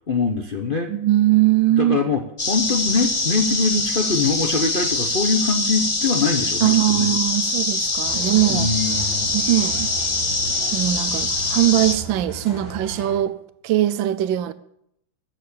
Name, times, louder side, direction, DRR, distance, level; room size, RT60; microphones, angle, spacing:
voice 1, 0.1-0.9 1.8-7.1 8.5-9.3, left 4 dB, 45° left, 0.7 m, -23 dB
voice 2, 0.9-2.0 6.6-8.7 9.3-9.9 10.7-13.4 13.6-14.5, right 14 dB, 80° right, 1.4 m, -20 dB
sound 1, 2.4-11.9, left 2 dB, 20° left, 0.9 m, -23 dB
sound 2, 8.0-13.2, right 1 dB, 80° left, 6.1 m, -36 dB
13.5 x 7.1 x 8.6 m
omnidirectional pair, 2.1 m